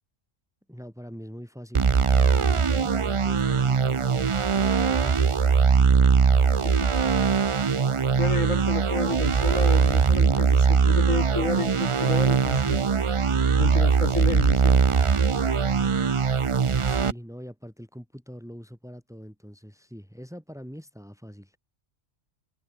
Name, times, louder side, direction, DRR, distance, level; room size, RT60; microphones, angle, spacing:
voice 1, 0.7-5.3 16.8-21.5, equal, ahead, 5.5 m, -43 dB
sound 1, 1.7-17.1, right 6 dB, 35° right, 0.5 m, -21 dB
voice 2, 8.2-12.8 13.6-14.9, left 3 dB, 90° left, 3.8 m, -30 dB
omnidirectional pair, 1.3 m